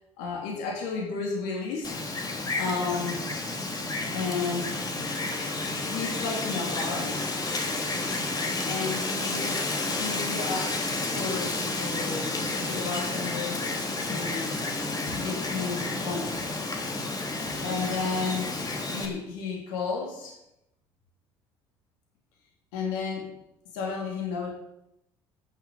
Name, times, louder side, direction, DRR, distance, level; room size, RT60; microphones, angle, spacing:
voice 1, 0.2-2.0 2.6-3.5 4.1-4.7 5.8-7.2 8.6-9.6 9.9-10.8 11.1-13.7 14.0-14.5 15.1-16.4 17.6-18.5 18.8-20.4 22.7-23.3 23.7-24.5, left 4 dB, 75° left, 0 dB, 3.0 m, -32 dB
Wind, 1.8-19.1, left 2 dB, 30° left, 3.3 m, -31 dB
13.0 x 8.0 x 8.0 m, 0.86 s
hypercardioid pair, 60°, 12 cm